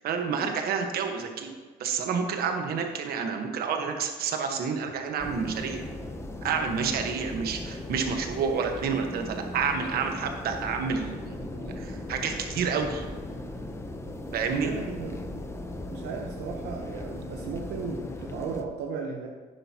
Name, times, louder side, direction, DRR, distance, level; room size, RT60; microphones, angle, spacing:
voice 1, 0.0-1.5 1.8-5.8 6.4-13.0 14.3-14.7, right 6 dB, 65° right, 4 dB, 1.3 m, -29 dB
sound 1, 5.2-18.6, left 1 dB, 15° left, 0.8 m, -38 dB
voice 2, 14.4-15.5 15.9-19.3, right 5 dB, 85° right, 1 dB, 1.0 m, -36 dB
10.5 x 9.7 x 2.9 m, 1.5 s
cardioid pair, 110°, 17 cm